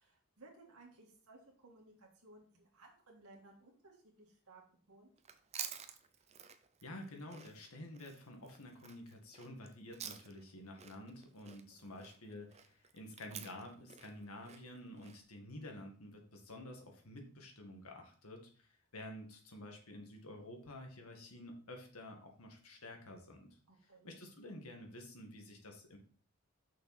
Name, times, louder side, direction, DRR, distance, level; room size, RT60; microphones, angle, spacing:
voice 1, 0.0-4.6 4.9-5.1 11.9-12.0 23.7-24.1, right 2 dB, 85° right, -2 dB, 1.9 m, -60 dB
Chewing mastication, 5.2-10.5 10.8-15.2, right 8 dB, 30° right, 0.6 m, -50 dB
voice 2, 6.8-23.5 24.0-26.0, left 1 dB, 75° left, 2 dB, 1.9 m, -50 dB
6.3 x 5.9 x 4.2 m, 0.44 s
head